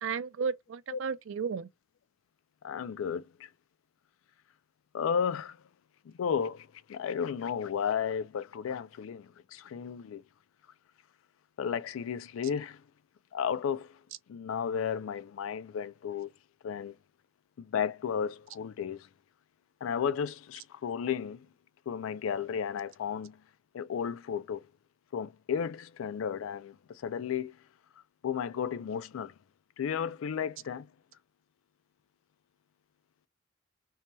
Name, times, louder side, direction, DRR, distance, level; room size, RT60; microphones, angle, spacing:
voice 1, 0.0-1.7, right 6 dB, 75° right, 0.4 m, -33 dB
voice 2, 2.6-3.5 4.9-5.6 6.1-10.2 11.6-12.8 13.3-14.0 14.3-16.3 16.6-17.0 17.6-19.1 19.8-21.5 21.9-23.4 23.7-24.6 25.1-27.6 28.2-29.3 29.8-30.9, left 7 dB, 90° left, 0.4 m, -33 dB
2.7 x 2.2 x 2.9 m
head